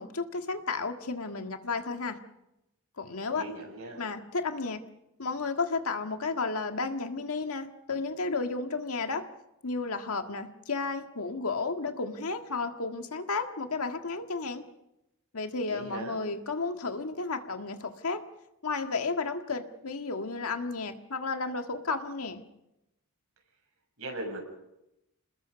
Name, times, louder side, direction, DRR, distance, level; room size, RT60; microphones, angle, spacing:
voice 1, 0.0-2.2 3.0-3.4 4.0-4.8 5.2-9.2 9.6-14.6 15.3-18.2 18.6-22.4, left 4 dB, 80° left, 6 dB, 1.7 m, -32 dB
voice 2, 3.3-4.0 15.6-16.2 24.0-24.4, right 2 dB, 70° right, 0 dB, 7.4 m, -38 dB
28.0 x 20.5 x 5.2 m, 0.88 s
head